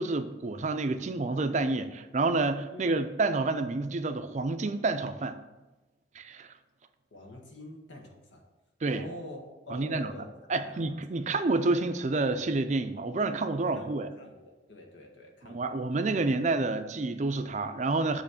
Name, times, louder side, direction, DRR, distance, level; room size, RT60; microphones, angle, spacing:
voice 1, 0.0-5.4 6.1-6.5 8.8-9.0 9.7-10.1 10.5-14.1 15.5-18.2, right 3 dB, 40° right, 9 dB, 0.4 m, -29 dB
voice 2, 2.7-3.1 7.1-8.4 8.9-10.3 10.6-11.0 13.7-15.7, left 1 dB, 90° left, 0 dB, 1.5 m, -46 dB
8.3 x 3.2 x 6.5 m, 1.1 s
head